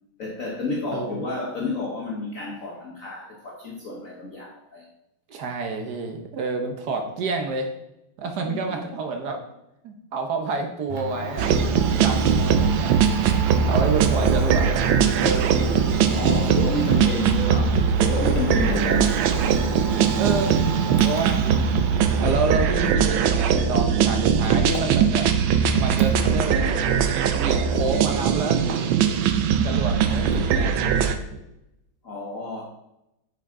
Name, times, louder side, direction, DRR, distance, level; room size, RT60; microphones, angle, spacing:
voice 1, 0.2-4.8 8.5-8.8 16.1-19.1 32.0-32.6, left 2 dB, 50° left, -1 dB, 1.3 m, -30 dB
voice 2, 5.3-7.7 8.2-9.4 9.8-11.5 12.0-13.1 13.5-14.9 15.1-15.7 20.2-21.7 22.2-25.3 25.7-26.6 27.3-28.6 29.6-30.7, right 4 dB, 60° right, 4 dB, 1.3 m, -29 dB
Domestic sounds home sounds, 10.9-29.2 29.5-30.6, right 2 dB, 35° right, 0.9 m, -36 dB
sound 1, 11.4-31.1, right 7 dB, 80° right, 1.5 m, -21 dB
8.9 x 6.0 x 3.7 m, 0.86 s
omnidirectional pair, 2.2 m